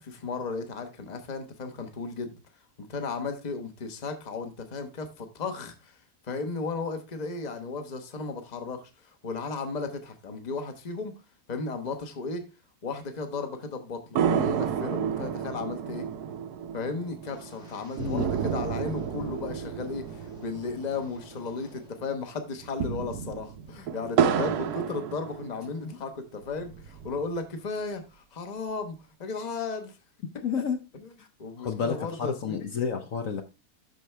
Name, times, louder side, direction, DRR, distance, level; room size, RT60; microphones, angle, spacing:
voice 1, 0.0-2.4 2.8-5.9 6.3-11.1 11.5-12.4 12.8-16.0 16.7-28.9 29.2-30.0 30.9-31.1 31.4-32.7, left 4 dB, 30° left, 1.1 m, -35 dB
sound 1, 14.2-21.8 22.0-22.1 22.6-25.9 26.4-27.4, right 8 dB, 80° right, 1.3 m, -31 dB
Wind, 17.2-22.1 22.3-22.8 23.2-23.5, left 3 dB, 45° left, 2.4 m, -54 dB
voice 2, 30.4-30.8 31.2-31.3 31.6-33.4, left 6 dB, 60° left, 1.1 m, -30 dB
12.0 x 4.6 x 3.3 m
omnidirectional pair, 1.7 m